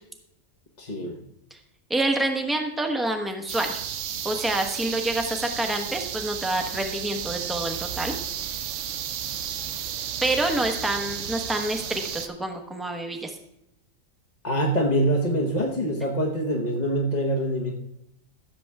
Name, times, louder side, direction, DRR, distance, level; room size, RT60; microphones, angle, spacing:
voice 1, 0.8-1.2 14.4-17.7, right 1 dB, 35° left, -1 dB, 1.1 m, -24 dB
voice 2, 1.9-3.8 4.2-8.1 10.2-13.4, right 1 dB, ahead, 4 dB, 0.9 m, -27 dB
sound 1, 3.5-12.3, right 9 dB, 70° right, 1.0 m, -33 dB
15.5 x 7.0 x 3.5 m, 0.83 s
omnidirectional pair, 1.4 m